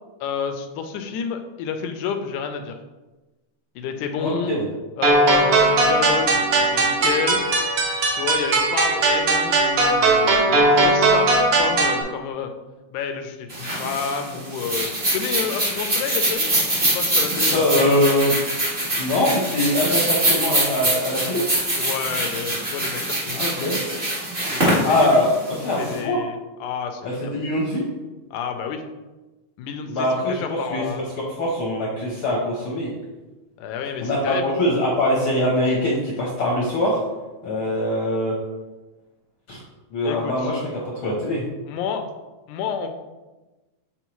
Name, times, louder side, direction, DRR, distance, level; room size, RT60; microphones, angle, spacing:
voice 1, 0.2-2.8 3.8-4.6 5.0-7.4 8.1-12.5 12.9-16.5 16.8-17.6 21.8-23.7 24.5-25.3 25.8-27.4 28.3-28.8 29.6-30.1 30.4-31.1 33.6-34.6 40.0-40.5 41.6-42.1 42.5-42.9, left 7 dB, 80° left, 6 dB, 2.1 m, -29 dB
voice 2, 4.2-4.6 17.5-18.4 19.0-21.5 23.3-23.8 24.8-25.3 25.6-26.2 27.0-27.8 29.9-30.4 30.7-31.0 31.4-32.9 34.0-37.0 37.4-38.3 39.5-39.6 39.9-41.4, left 1 dB, 65° left, -3 dB, 1.4 m, -22 dB
sound 1, 5.0-12.0, right 2 dB, 60° right, 1.7 m, -19 dB
sound 2, 13.5-25.9, right 1 dB, 25° right, 1.4 m, -24 dB
8.1 x 4.1 x 3.0 m, 1.1 s
omnidirectional pair, 3.5 m